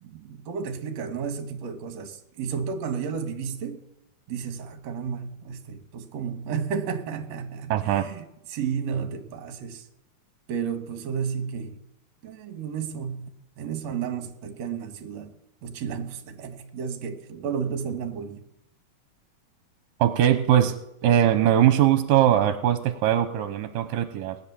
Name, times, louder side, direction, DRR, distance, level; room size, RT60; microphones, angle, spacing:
voice 1, 0.0-3.8 4.3-9.9 10.5-11.8 12.2-13.3 13.6-15.3 15.6-18.4, right 6 dB, 55° right, 2.5 m, -32 dB
voice 2, 7.7-8.1 20.0-20.8 21.0-24.4, right 11 dB, 75° right, 2.4 m, -21 dB
19.0 x 10.5 x 7.0 m
omnidirectional pair, 4.1 m